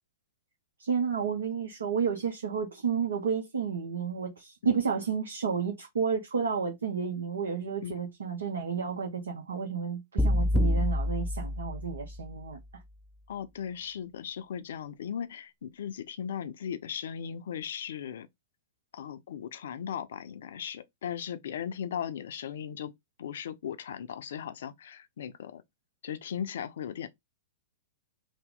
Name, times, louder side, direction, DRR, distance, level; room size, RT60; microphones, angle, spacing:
voice 1, 0.8-12.6, right 6 dB, 75° right, 0.6 m, -31 dB
sound 1, 10.2-12.4, left 1 dB, ahead, 0.4 m, -27 dB
voice 2, 13.3-18.3 18.9-22.9 23.2-25.6 26.0-27.1, left 8 dB, 65° left, 0.4 m, -37 dB
2.9 x 2.0 x 3.7 m
figure-of-eight pair, 105°, 0 cm